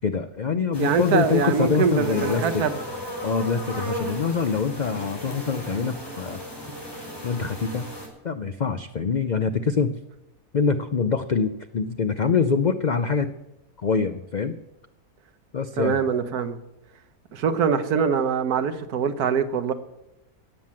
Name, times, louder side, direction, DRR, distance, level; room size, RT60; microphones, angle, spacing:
voice 1, 0.0-2.6 3.2-6.4 7.2-7.9 8.2-9.9 10.5-13.3 13.8-14.6 15.5-16.0, left 5 dB, 75° left, 9 dB, 0.4 m, -24 dB
sound 1, 0.7-8.1, equal, 15° left, 4.1 m, -35 dB
voice 2, 0.8-2.8 15.8-16.6 17.3-19.7, right 6 dB, 85° right, 10 dB, 1.5 m, -23 dB
17.0 x 7.6 x 7.4 m, 0.93 s
omnidirectional pair, 1.6 m